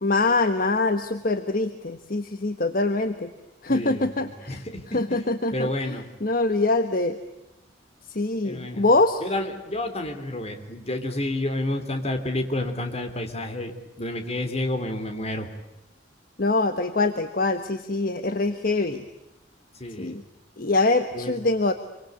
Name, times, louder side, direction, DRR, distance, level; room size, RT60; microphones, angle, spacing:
voice 1, 0.0-3.3 3.6-7.2 8.1-9.2 16.4-19.0 20.0-20.2 20.6-21.7, left 2 dB, 50° left, 9 dB, 1.4 m, -24 dB
voice 2, 3.7-6.1 8.4-8.8 9.2-13.7 14.0-15.5 19.8-20.1 21.1-21.4, left 1 dB, 35° left, 7 dB, 3.5 m, -30 dB
26.5 x 25.0 x 8.5 m, 0.94 s
head